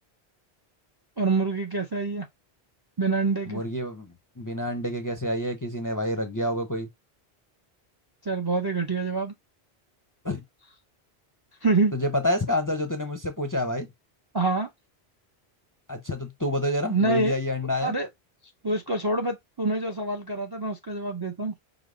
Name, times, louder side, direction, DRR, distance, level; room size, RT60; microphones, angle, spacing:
voice 1, 1.2-2.3 3.0-3.6 8.2-9.3 11.6-11.9 14.3-14.7 16.9-17.4 17.8-18.1 18.6-21.5, right 3 dB, 30° right, 0.4 m, -26 dB
voice 2, 3.5-6.9 10.2-10.4 11.9-13.9 15.9-17.9, left 1 dB, 25° left, 0.5 m, -28 dB
5.0 x 2.0 x 3.6 m
omnidirectional pair, 1.1 m